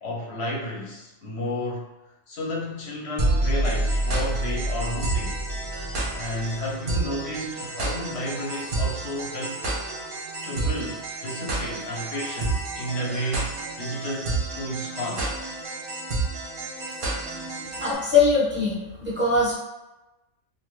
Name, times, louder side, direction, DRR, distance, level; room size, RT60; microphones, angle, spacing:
voice 1, 0.0-1.8 2.3-5.4 6.1-9.6 10.4-15.4, left 1 dB, 60° left, -3 dB, 0.8 m, -32 dB
sound 1, 3.2-17.9, right 2 dB, 55° right, 0.7 m, -29 dB
voice 2, 17.8-19.6, left 4 dB, 10° right, -7 dB, 0.8 m, -21 dB
2.7 x 2.2 x 3.1 m, 1.0 s
omnidirectional pair, 1.4 m